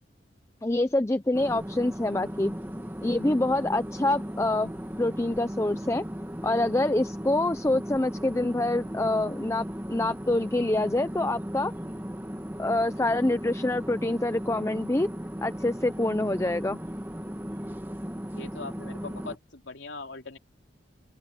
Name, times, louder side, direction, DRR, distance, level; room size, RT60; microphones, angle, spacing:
voice 1, 0.6-2.5 3.0-4.7 5.0-6.0 6.4-11.7 12.6-15.1 15.4-16.8, left 2 dB, 15° left, 0.5 m, -26 dB
sound 1, 1.3-19.4, equal, 10° right, 1.4 m, -37 dB
voice 2, 18.4-20.4, left 3 dB, 90° left, 3.0 m, -40 dB
open air
head